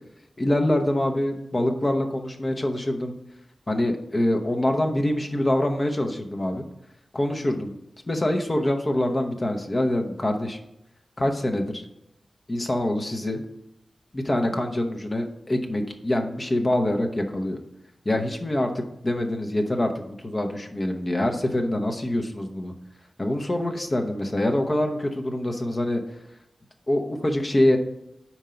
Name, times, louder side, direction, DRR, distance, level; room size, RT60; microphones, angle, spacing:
voice 1, 0.4-3.1 3.7-6.6 7.1-7.7 8.1-10.6 11.2-11.8 12.5-13.4 14.1-17.6 18.0-22.7 23.2-26.0 26.9-27.8, left 1 dB, 30° left, 3 dB, 0.9 m, -25 dB
5.1 x 4.5 x 5.6 m, 0.81 s
wide cardioid pair, 120°, 0 cm